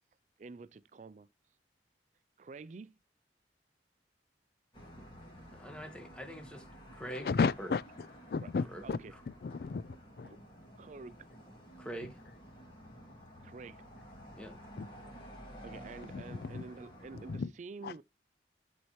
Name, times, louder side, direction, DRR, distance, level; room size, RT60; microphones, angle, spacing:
voice 1, 0.4-1.3 2.4-3.0 8.8-9.1 10.2-10.4 10.8-11.3 13.4-13.9 15.6-18.0, right 4 dB, 40° right, 0.4 m, -48 dB
sound 1, 4.7-17.4, equal, 30° left, 2.4 m, -52 dB
voice 2, 4.9-6.7 6.9-7.7 8.7-8.8 9.1-9.2 11.8-12.2 14.4-14.5, right 1 dB, 5° left, 1.4 m, -45 dB
voice 3, 7.1-9.0 9.4-10.4 14.8-14.9 16.1-16.6 17.1-17.5 17.8-17.9, left 4 dB, 60° left, 0.4 m, -34 dB
11.5 x 4.3 x 3.1 m
head